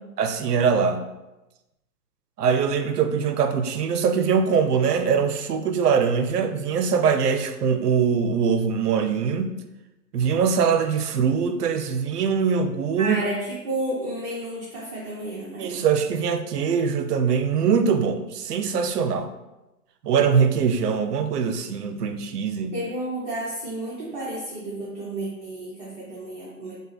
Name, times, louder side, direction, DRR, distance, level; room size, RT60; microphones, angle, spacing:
voice 1, 0.2-1.0 2.4-9.5 10.1-13.2 15.6-19.3 20.0-22.8, right 6 dB, 90° right, 8 dB, 0.6 m, -22 dB
voice 2, 13.0-15.7 22.7-26.7, right 1 dB, 30° right, -7 dB, 0.9 m, -31 dB
5.2 x 2.2 x 3.2 m, 0.99 s
hypercardioid pair, 140°, 46 cm